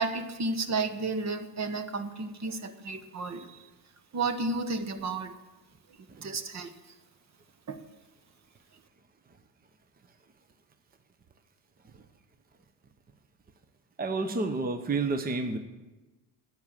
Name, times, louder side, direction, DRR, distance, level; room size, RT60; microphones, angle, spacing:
voice 1, 0.0-3.6 4.1-5.3 6.2-6.7 7.7-7.8, right 3 dB, 40° right, 10 dB, 1.2 m, -32 dB
voice 2, 14.0-15.6, right 3 dB, 20° right, 8 dB, 0.9 m, -30 dB
9.6 x 9.4 x 7.4 m, 1.2 s
supercardioid pair, 85°, 43 cm